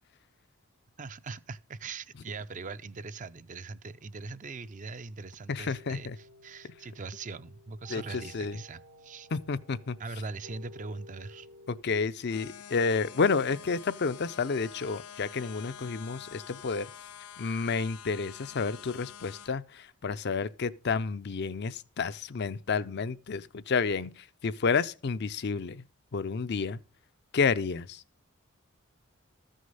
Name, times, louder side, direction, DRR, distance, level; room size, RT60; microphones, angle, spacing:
voice 1, 1.0-9.3 10.0-11.5, right 4 dB, 35° right, 0.5 m, -41 dB
voice 2, 5.5-6.2 7.9-8.6 9.3-10.0 11.7-16.9 17.4-25.8 26.1-26.8 27.3-28.0, left 5 dB, 50° left, 0.5 m, -30 dB
sound 1, 5.7-11.8, equal, 80° right, 1.6 m, -54 dB
sound 2, 12.3-19.5, left 8 dB, 90° left, 0.6 m, -47 dB
14.0 x 6.4 x 5.5 m
head